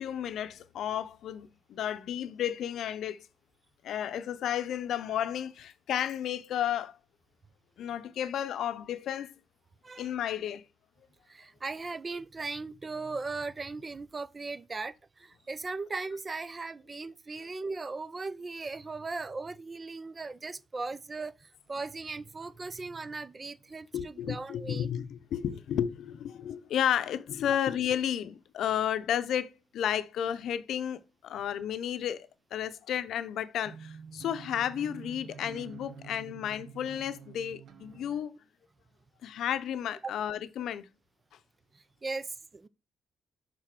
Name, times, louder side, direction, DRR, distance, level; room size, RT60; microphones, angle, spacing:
voice 1, 0.0-3.3 3.8-6.9 7.8-9.3 10.0-10.6 23.9-38.3 39.2-40.9, left 10 dB, 75° left, 0.6 m, -32 dB
voice 2, 11.3-24.9 41.7-42.7, right 3 dB, 30° right, 0.5 m, -38 dB
sound 1, 33.6-38.2, right 6 dB, 65° right, 1.0 m, -48 dB
6.5 x 4.1 x 6.0 m
cardioid pair, 90°, 0 cm